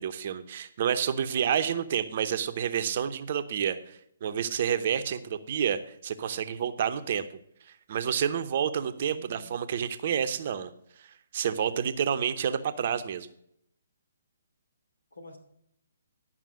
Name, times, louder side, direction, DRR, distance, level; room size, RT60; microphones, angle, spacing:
voice 1, 0.0-7.3 7.7-10.7 11.0-11.1 11.3-13.3, right 8 dB, 45° right, 10 dB, 0.8 m, -29 dB
voice 2, 1.2-1.7 9.1-9.5 15.1-15.4, equal, 80° left, 5 dB, 2.8 m, -48 dB
11.0 x 5.9 x 6.3 m, 0.73 s
figure-of-eight pair, 135°, 0 cm